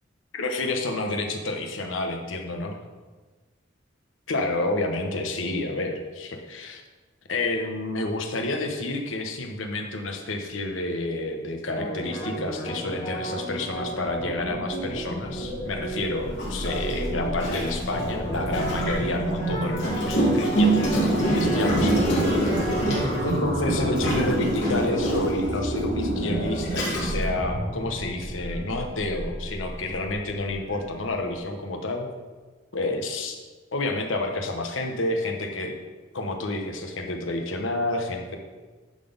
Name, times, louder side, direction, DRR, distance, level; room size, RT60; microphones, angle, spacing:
voice 1, 0.3-2.8 4.3-6.8 7.3-22.2 23.2-32.1 32.7-33.4 33.7-35.8 36.1-38.4, left 2 dB, 85° left, 3 dB, 1.0 m, -29 dB
sound 1, 11.7-23.2, right 1 dB, 35° left, 1.7 m, -33 dB
sound 2, 13.6-31.3, right 1 dB, 75° right, 1.9 m, -30 dB
Gurgling, 15.5-15.6 16.4-19.1 19.7-23.4 24.0-25.4 26.1-26.2 26.6-27.2, right 1 dB, 65° left, 2.7 m, -26 dB
11.0 x 4.0 x 5.1 m, 1.3 s
head